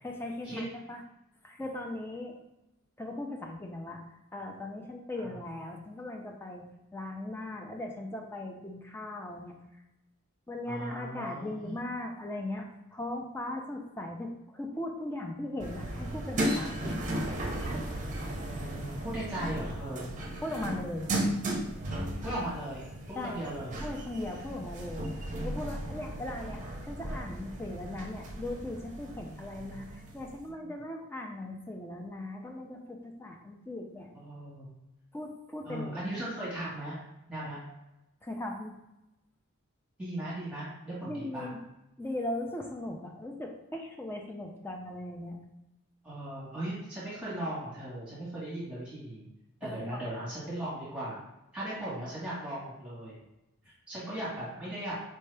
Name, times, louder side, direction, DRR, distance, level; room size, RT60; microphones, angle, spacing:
voice 1, 0.0-1.0 1.4-2.3 3.0-4.0 4.3-6.7 6.9-9.6 10.5-17.0 20.4-21.1 23.2-23.4 23.8-25.1 25.4-34.1 35.1-36.0 38.2-38.7 41.0-41.6 42.0-45.4 49.6-50.0, left 1 dB, 10° left, 1 dB, 0.4 m, -38 dB
voice 2, 10.7-11.7 18.5-20.1 22.2-22.8 23.1-23.8 29.5-29.8 30.6-30.7 34.1-34.7 35.6-37.0 37.3-37.6 40.0-41.5 46.0-49.3 49.6-51.2 51.5-53.2 53.9-54.9, right 1 dB, 5° right, -9 dB, 1.4 m, -38 dB
sound 1, 15.6-30.4, right 1 dB, 35° right, 0.7 m, -36 dB
4.4 x 2.8 x 3.3 m, 0.93 s
head